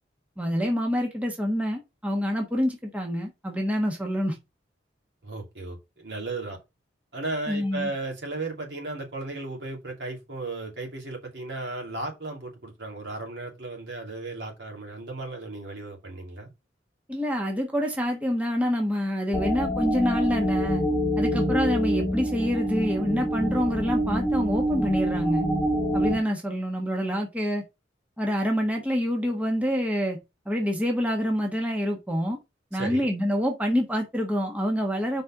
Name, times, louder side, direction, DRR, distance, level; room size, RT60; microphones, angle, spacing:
voice 1, 0.4-4.4 7.5-7.9 17.1-20.8 21.2-25.5 25.9-27.6 28.2-30.2 30.4-32.4 32.7-35.2, equal, 10° right, 1.2 m, -26 dB
voice 2, 5.2-6.6 7.1-16.5 32.7-33.0, right 2 dB, 70° right, 2.6 m, -35 dB
sound 1, 19.3-26.2, equal, 20° left, 1.6 m, -26 dB
5.1 x 4.1 x 5.8 m
head